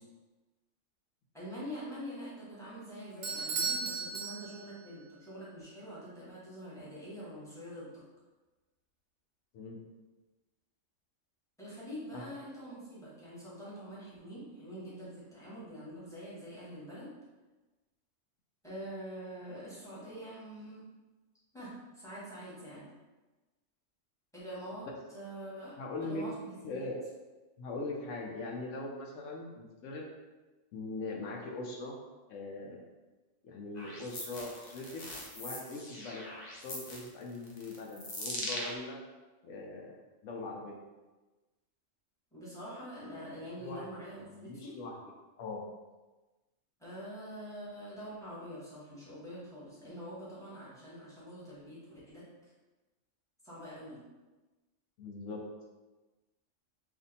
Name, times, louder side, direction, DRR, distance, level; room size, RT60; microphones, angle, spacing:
voice 1, 1.3-8.0 11.6-17.1 18.6-20.8 21.5-22.9 24.3-25.8 26.0-26.8 42.3-44.7 46.8-52.2 53.4-54.0, equal, 5° left, -9 dB, 1.1 m, -45 dB
Bell / Doorbell, 3.2-4.9, right 4 dB, 65° right, 0.8 m, -35 dB
voice 2, 25.8-26.2 26.6-27.0 27.6-30.1 30.7-32.0 32.3-32.8 33.4-35.0 35.4-36.2 36.6-39.0 39.4-40.0 40.2-40.8 43.6-43.9 44.2-45.0 45.4-45.6 55.0-55.4, left 2 dB, 75° left, 0 dB, 0.9 m, -41 dB
sound 1, 33.8-38.8, left 1 dB, 50° left, 0.5 m, -41 dB
2.6 x 2.5 x 4.0 m, 1.2 s
omnidirectional pair, 1.3 m